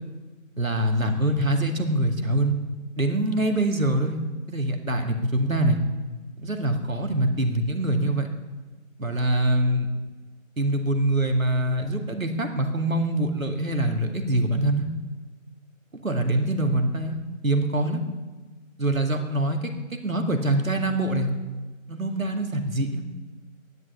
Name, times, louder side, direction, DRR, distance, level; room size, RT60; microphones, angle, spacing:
voice 1, 0.6-2.6 3.0-4.2 4.5-5.8 6.4-8.3 9.0-9.9 10.6-14.9 15.9-17.2 17.4-18.0 18.8-21.3 21.9-23.0, right 1 dB, 75° right, 4 dB, 2.2 m, -24 dB
14.5 x 11.0 x 7.0 m, 1.3 s
figure-of-eight pair, 180°, 41 cm